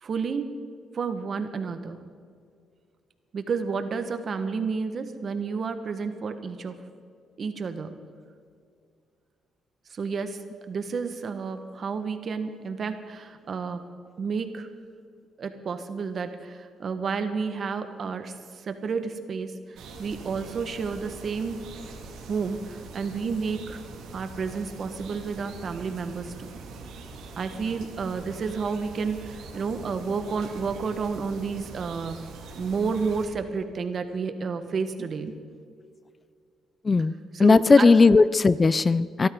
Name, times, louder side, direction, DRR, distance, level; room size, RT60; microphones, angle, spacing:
voice 1, 0.0-0.5 0.9-2.0 3.3-6.8 7.4-7.9 9.9-10.4 10.7-13.8 14.2-14.7 15.4-21.6 22.3-23.8 24.1-26.5 27.4-32.2 32.6-35.3 37.0-37.1 37.3-37.9, right 5 dB, 50° right, 8 dB, 1.5 m, -31 dB
sound 1, 19.8-33.3, right 3 dB, 85° right, 2.4 m, -43 dB
voice 2, 37.4-39.3, left 4 dB, 30° left, 17 dB, 0.4 m, -17 dB
23.5 x 13.5 x 3.9 m, 2.2 s
cardioid pair, 90°, 0 cm